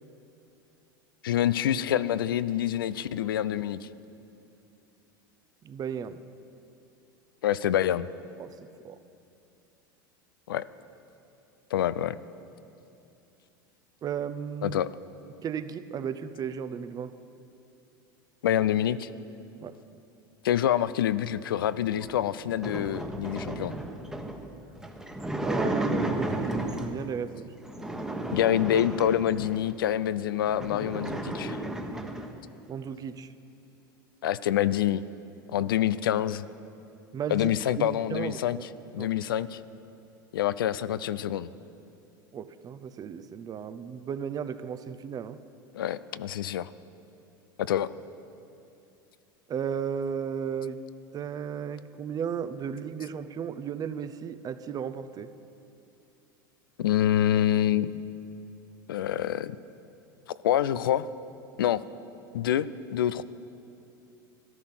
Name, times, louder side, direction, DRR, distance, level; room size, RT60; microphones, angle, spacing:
voice 1, 1.2-3.9 7.4-8.1 10.5-10.6 11.7-12.2 14.6-14.9 18.4-19.1 20.4-23.7 28.3-31.6 34.2-35.0 35.5-36.5 37.3-39.6 40.3-41.5 45.8-46.7 47.6-47.9 56.8-57.9 58.9-59.6 60.4-61.1 61.6-61.8 62.3-63.2, left 11 dB, 80° left, 16 dB, 0.4 m, -26 dB
voice 2, 5.6-6.2 8.4-8.5 8.8-9.0 14.0-14.8 15.4-17.2 19.6-19.7 25.4-27.5 32.7-33.3 35.6-35.7 37.1-38.4 39.0-39.1 42.3-45.4 49.5-50.8 51.1-55.3, right 7 dB, 35° right, 13 dB, 0.7 m, -35 dB
sound 1, 21.9-27.1 27.6-29.7 30.2-30.3 30.5-32.4, right 1 dB, 5° right, 1.2 m, -33 dB
14.0 x 12.5 x 5.9 m, 2.7 s
hypercardioid pair, 90°, 11 cm